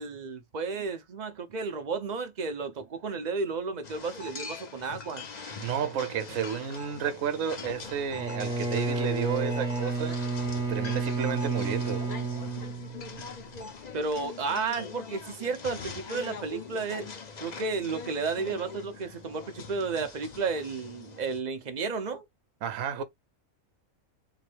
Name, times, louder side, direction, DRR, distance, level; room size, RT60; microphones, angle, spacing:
voice 1, 0.0-5.2 13.9-17.1 17.4-22.2, right 4 dB, 45° right, 0.6 m, -32 dB
sound 1, 3.8-21.4, left 4 dB, 40° left, 0.6 m, -42 dB
voice 2, 5.4-10.2 10.7-12.1 22.6-23.0, right 7 dB, 70° right, 1.1 m, -32 dB
Bowed string instrument, 8.1-13.4, right 3 dB, 5° right, 0.7 m, -31 dB
3.8 x 2.1 x 3.2 m
omnidirectional pair, 1.4 m